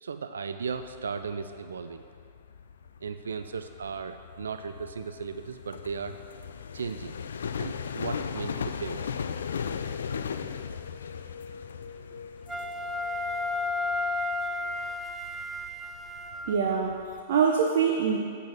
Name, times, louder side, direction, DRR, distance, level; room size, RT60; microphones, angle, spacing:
voice 1, 0.0-2.0 3.0-6.2 6.7-7.2 7.5-9.2, right 5 dB, 75° right, 9 dB, 0.3 m, -36 dB
sound 1, 0.6-17.2, left 7 dB, 70° left, 0.3 m, -38 dB
Wind instrument woodwind instrument, 12.5-16.8, left 2 dB, 10° right, 0.5 m, -32 dB
voice 2, 16.5-18.2, right 6 dB, 55° right, 0 dB, 0.7 m, -24 dB
8.6 x 4.1 x 7.0 m, 2.3 s
figure-of-eight pair, 105°, 0 cm